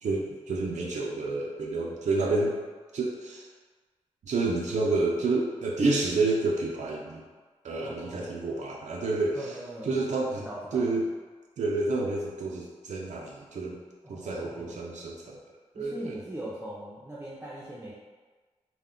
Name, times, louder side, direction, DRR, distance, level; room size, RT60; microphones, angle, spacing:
voice 1, 0.0-2.5 2.9-3.5 4.2-7.2 7.6-9.5 9.8-10.5 10.7-11.1 11.6-13.8 14.1-15.4 15.8-16.2, right 3 dB, 75° right, -2 dB, 0.4 m, -29 dB
voice 2, 7.8-8.3 9.3-10.0 10.4-10.8 14.0-14.8 15.8-17.9, right 1 dB, 15° right, -7 dB, 0.4 m, -40 dB
2.2 x 2.1 x 3.6 m, 1.4 s
wide cardioid pair, 105°, 12 cm